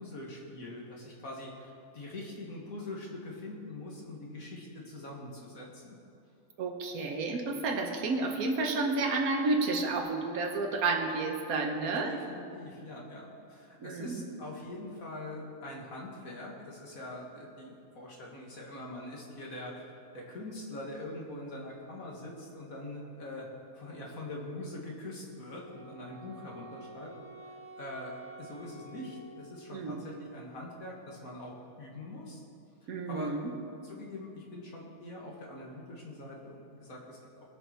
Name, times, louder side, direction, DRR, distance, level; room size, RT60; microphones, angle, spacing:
voice 1, 0.0-6.0 12.0-19.8 20.1-23.5 23.7-27.1 27.4-32.4 32.8-33.3 33.8-37.2, left 1 dB, 70° left, -2 dB, 2.3 m, -43 dB
voice 2, 6.6-12.1 13.8-14.3 29.7-30.0 32.9-33.5, right 3 dB, 75° right, 2 dB, 1.5 m, -31 dB
Wind instrument woodwind instrument, 25.4-30.2, right 2 dB, 30° right, 2.3 m, -50 dB
19.0 x 6.9 x 4.5 m, 2.5 s
omnidirectional pair, 1.5 m